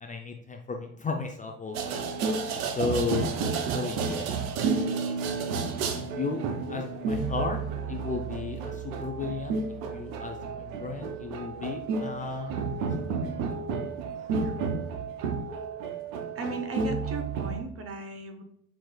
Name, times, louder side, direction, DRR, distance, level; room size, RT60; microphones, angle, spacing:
voice 1, 0.0-1.9 2.7-3.3 3.7-4.4 6.1-6.4 6.7-7.6 7.9-9.6 9.9-12.5 13.2-13.3, left 4 dB, 20° left, 3 dB, 0.5 m, -34 dB
sound 1, 1.7-17.6, right 5 dB, 75° right, 0.7 m, -31 dB
voice 2, 16.3-18.4, right 3 dB, 35° right, 6 dB, 0.8 m, -37 dB
5.9 x 3.1 x 2.2 m, 0.68 s
hypercardioid pair, 65°, 41 cm